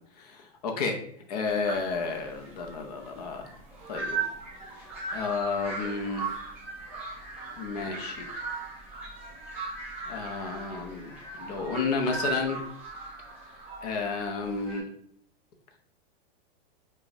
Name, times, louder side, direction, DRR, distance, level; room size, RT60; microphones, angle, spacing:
voice 1, 0.2-1.0 1.3-3.5 3.9-4.2 4.8-4.9 5.1-6.3 7.6-8.3 10.1-12.6 13.8-14.9, left 4 dB, 40° left, 4 dB, 0.6 m, -31 dB
sound 1, 1.5-14.8, right 4 dB, 5° right, 0.6 m, -38 dB
5.0 x 2.3 x 2.6 m, 0.64 s
supercardioid pair, 170°, 32 cm